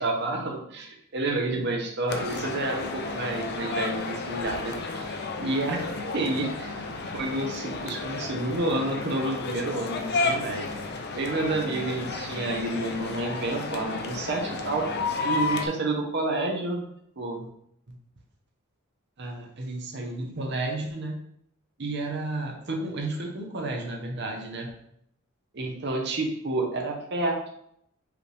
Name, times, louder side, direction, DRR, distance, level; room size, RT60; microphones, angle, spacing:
voice 1, 0.0-5.8 6.1-6.8 7.1-10.7 11.1-14.9 15.2-16.8 17.2-17.5 19.2-21.1 21.8-24.7 25.5-27.5, right 2 dB, 55° right, 1 dB, 0.9 m, -30 dB
sound 1, 2.1-15.7, left 3 dB, 55° left, 0.5 m, -32 dB
4.9 x 3.2 x 3.3 m, 0.72 s
head